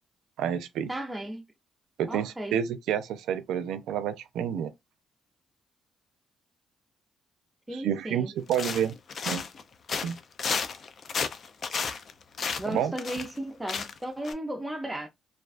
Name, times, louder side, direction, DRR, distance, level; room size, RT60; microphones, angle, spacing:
voice 1, 0.4-0.9 2.0-4.7 7.7-8.9 9.2-9.4 10.0-10.2 12.7-12.9, right 9 dB, 85° right, 0.4 m, -29 dB
voice 2, 0.9-1.4 2.1-2.6 7.7-8.3 12.6-15.1, right 1 dB, 10° right, 0.4 m, -35 dB
sound 1, 8.5-9.6 9.9-13.4 13.7-14.0 14.2-14.3, left 5 dB, 50° left, 0.4 m, -32 dB
2.3 x 2.3 x 2.4 m
cardioid pair, 90°, 0 cm